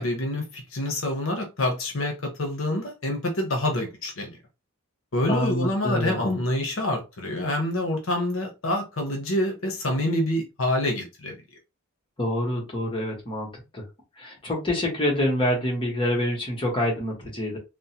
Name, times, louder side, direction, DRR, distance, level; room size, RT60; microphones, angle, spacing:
voice 1, 0.0-4.4 5.1-11.4, left 1 dB, 65° left, 0.8 m, -27 dB
voice 2, 5.3-6.3 12.2-13.5 13.7-13.8 14.2-17.6, left 1 dB, 25° left, 1.1 m, -26 dB
3.5 x 2.1 x 2.8 m
head